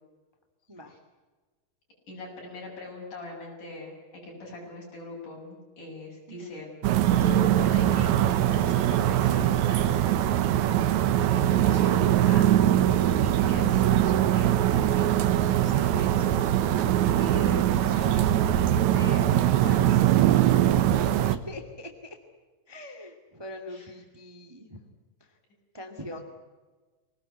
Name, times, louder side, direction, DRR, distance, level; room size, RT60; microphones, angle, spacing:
voice 1, 2.1-3.9 4.2-6.7 7.2-10.2 10.8-10.9 11.3-12.5 13.2-15.1 15.4-16.8 17.2-18.4 18.9-19.3 19.6-20.1 23.7-23.9, left 1 dB, 85° left, -3 dB, 9.3 m, -41 dB
voice 2, 6.3-6.6 11.2-11.5 20.8-22.2 22.7-24.8 25.2-25.4 25.7-26.2, left 1 dB, 10° right, 7 dB, 1.9 m, -43 dB
sound 1, 6.8-21.4, right 12 dB, 70° right, 2.2 m, -22 dB
25.5 x 19.0 x 9.8 m, 1.3 s
omnidirectional pair, 3.6 m